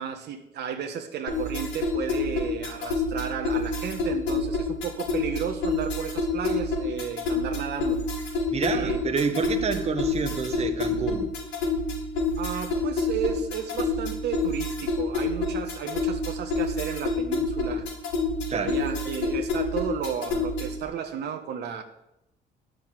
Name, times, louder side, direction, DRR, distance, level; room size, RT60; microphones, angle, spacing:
voice 1, 0.0-8.4 8.7-9.2 12.4-17.9 18.5-21.8, right 7 dB, 65° right, 5 dB, 1.3 m, -33 dB
sound 1, 1.3-20.8, left 3 dB, 80° left, 3.8 m, -28 dB
voice 2, 8.5-11.3 18.5-18.7, right 5 dB, 35° right, 5 dB, 1.4 m, -28 dB
10.5 x 6.6 x 9.0 m, 0.83 s
cardioid pair, 90°, 19 cm